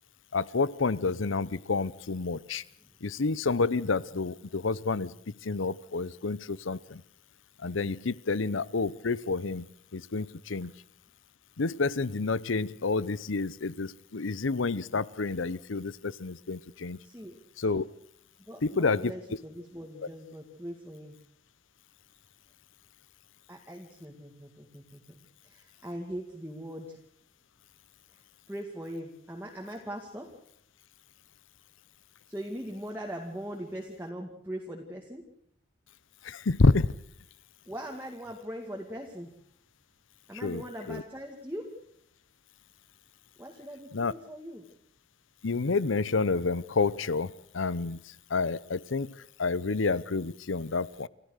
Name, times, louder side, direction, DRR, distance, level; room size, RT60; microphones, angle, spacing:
voice 1, 0.3-2.6 3.0-5.1 5.4-7.0 7.6-10.7 11.6-17.0 17.6-17.8 18.6-19.1 36.2-36.9 40.4-40.6 40.9-41.0 43.9-44.1 45.4-48.0 48.3-49.1 49.4-51.1, left 3 dB, 85° left, 20 dB, 0.8 m, -29 dB
voice 2, 17.0-17.4 18.4-21.2 23.5-27.0 28.1-30.3 32.3-35.2 37.7-39.3 40.3-41.7 43.4-44.7, equal, 10° right, 0 dB, 2.1 m, -41 dB
29.0 x 14.5 x 6.5 m, 0.68 s
head